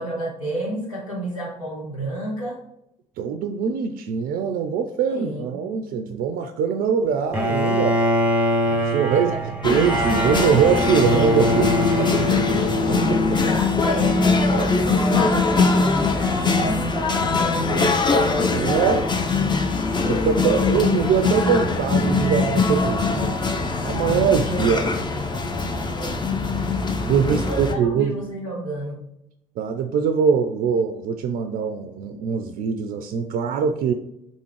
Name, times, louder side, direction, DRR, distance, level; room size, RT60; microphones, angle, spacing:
voice 1, 0.0-2.6 5.1-5.7 9.1-9.5 12.5-12.6 13.5-15.1 15.5-17.8 20.0-20.3 25.9-26.4 27.2-29.0, right 1 dB, 85° left, -4 dB, 1.2 m, -31 dB
voice 2, 3.2-8.0 8.9-9.3 9.6-11.7 12.0-12.1 13.1-13.4 15.6-15.7 18.5-19.1 20.1-23.4 23.8-24.9 27.0-28.1 29.6-33.9, right 7 dB, 55° right, 6 dB, 0.4 m, -22 dB
Bowed string instrument, 7.3-13.5, equal, 10° right, 0.8 m, -23 dB
sound 1, 9.6-27.7, left 3 dB, 25° left, 0.6 m, -22 dB
3.9 x 3.6 x 3.1 m, 0.81 s
figure-of-eight pair, 45°, 17 cm